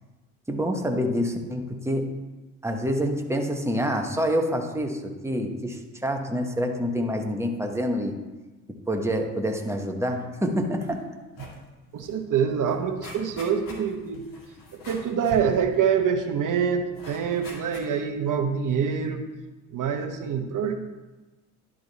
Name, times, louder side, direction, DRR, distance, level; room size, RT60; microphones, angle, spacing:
voice 1, 0.5-2.1 2.6-8.1 8.9-11.0, equal, 5° right, 3 dB, 1.1 m, -27 dB
sound 1, 10.8-11.0 11.3-11.6 12.0-12.1 12.4-16.3 16.9-18.2 18.7-18.8, left 2 dB, 50° left, 2.0 m, -45 dB
voice 2, 11.9-14.2 14.7-19.2 19.7-20.7, right 7 dB, 45° right, 6 dB, 1.1 m, -25 dB
11.0 x 3.7 x 4.1 m, 1.2 s
hypercardioid pair, 65°, 43 cm